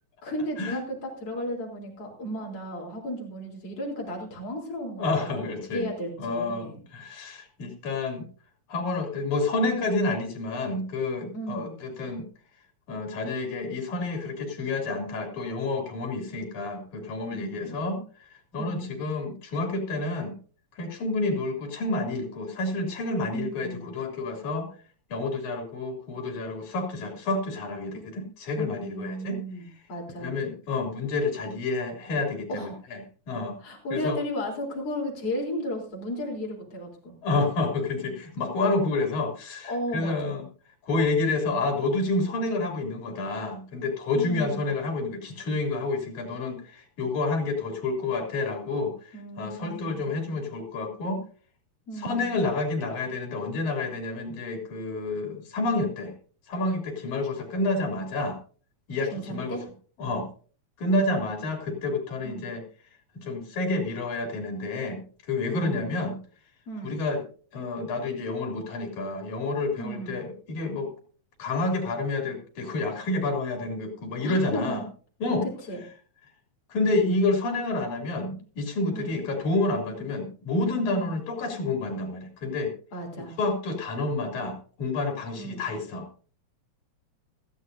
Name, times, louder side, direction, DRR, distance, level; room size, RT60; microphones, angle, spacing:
voice 1, 0.2-6.8 11.3-11.8 17.3-17.8 18.6-19.1 23.3-23.9 28.6-30.5 32.5-32.8 33.6-37.1 39.6-40.4 44.1-44.7 49.1-50.0 51.9-52.4 59.1-59.6 61.0-61.3 62.2-62.4 65.5-65.9 66.7-67.0 69.8-70.2 74.2-74.9 75.7-75.8 78.9-79.2 80.0-80.1 80.9-81.2 82.9-83.3 85.4-85.6, equal, 55° left, -2 dB, 4.7 m, -35 dB
voice 2, 5.0-5.9 6.2-8.3 8.7-12.3 12.9-18.0 18.5-20.4 20.8-24.7 25.1-29.4 30.2-33.0 33.3-33.6 33.9-34.2 37.2-40.4 40.8-51.2 52.0-56.1 56.5-58.4 58.9-59.6 60.0-60.3 60.8-62.6 63.1-65.0 65.3-66.2 66.8-67.2 67.5-70.9 71.4-74.8 75.2-75.5 76.7-82.7 83.4-86.1, left 2 dB, 85° left, 2 dB, 4.5 m, -29 dB
20.0 x 14.0 x 2.7 m, 0.40 s
omnidirectional pair, 3.4 m